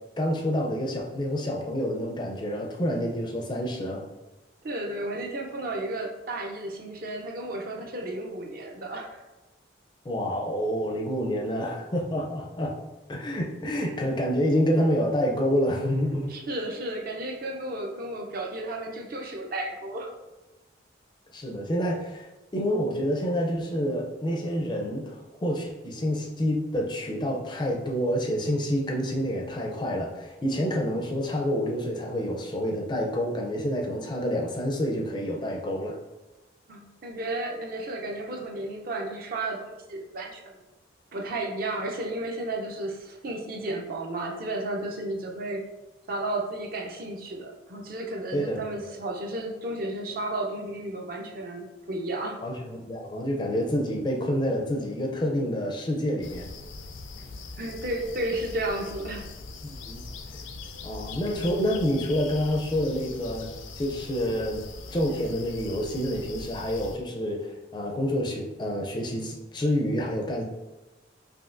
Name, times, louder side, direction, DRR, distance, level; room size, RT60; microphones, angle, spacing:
voice 1, 0.2-4.0 10.0-12.8 13.1-16.4 21.3-36.0 48.3-48.6 52.4-56.5 59.6-60.0 60.8-64.7 64.9-70.4, equal, 25° left, 0 dB, 0.4 m, -28 dB
voice 2, 4.6-9.2 16.3-20.1 36.7-40.6 41.1-45.6 46.1-52.4 57.6-59.3, right 1 dB, 50° right, 1 dB, 0.5 m, -33 dB
sound 1, 56.2-67.0, left 3 dB, 80° left, 0.4 m, -41 dB
5.2 x 2.7 x 2.5 m, 1.1 s
head